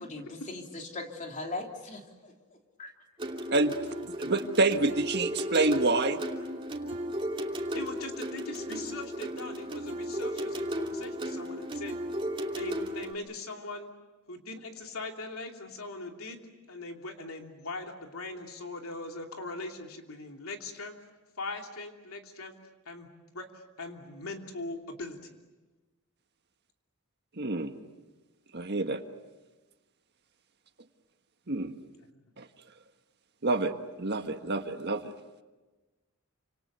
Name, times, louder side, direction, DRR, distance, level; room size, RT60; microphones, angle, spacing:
voice 1, 0.1-2.3 2.8-2.9, left 2 dB, 35° left, 2 dB, 3.1 m, -39 dB
sound 1, 3.2-13.1, equal, 25° right, 2.8 m, -35 dB
voice 2, 4.2-6.2 27.4-27.7 28.5-29.0 31.5-31.7 32.4-32.5 33.4-33.7 34.0-35.1, right 2 dB, 50° right, 7 dB, 1.5 m, -27 dB
voice 3, 7.7-12.0 12.5-13.9 14.3-16.4 16.7-20.9 21.4-22.5 22.8-23.1 23.3-25.3, left 2 dB, 80° left, 3 dB, 3.0 m, -40 dB
29.5 x 26.5 x 6.8 m, 1.2 s
head